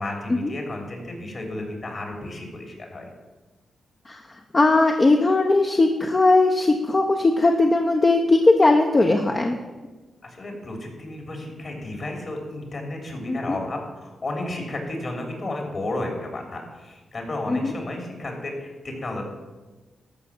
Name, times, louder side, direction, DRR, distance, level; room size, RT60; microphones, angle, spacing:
voice 1, 0.0-3.1 10.2-19.2, left 2 dB, 50° left, 2 dB, 3.5 m, -33 dB
voice 2, 4.5-9.6 13.3-13.6 17.5-17.7, left 2 dB, 30° left, 3 dB, 1.0 m, -19 dB
13.0 x 5.8 x 7.3 m, 1.2 s
cardioid pair, 65°, 0 cm